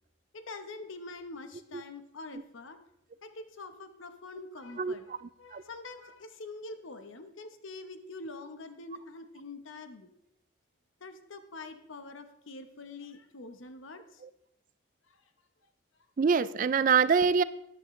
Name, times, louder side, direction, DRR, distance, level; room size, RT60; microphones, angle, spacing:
voice 1, 0.3-2.8 3.2-10.1 11.0-14.2 15.1-15.3, left 3 dB, 80° left, 8 dB, 1.0 m, -45 dB
voice 2, 4.8-5.2 5.5-5.6 16.2-17.4, right 6 dB, 40° right, 16 dB, 0.3 m, -25 dB
13.5 x 9.7 x 3.2 m, 0.80 s
head